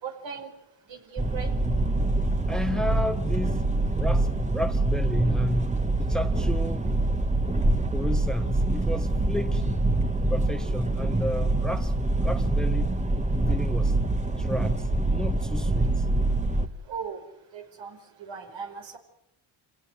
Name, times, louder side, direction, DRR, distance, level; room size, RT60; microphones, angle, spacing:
voice 1, 0.0-0.5 0.9-1.5 16.9-17.2 17.5-19.0, right 6 dB, 70° right, 4 dB, 5.1 m, -38 dB
sound 1, 1.2-16.7, right 2 dB, 15° right, 1.8 m, -25 dB
voice 2, 2.5-3.7 3.9-6.8 7.9-9.9 10.3-12.9 13.5-14.0 14.4-16.1, left 1 dB, ahead, 9 dB, 1.6 m, -32 dB
26.5 x 17.5 x 9.5 m, 0.85 s
cardioid pair, 85°, 46 cm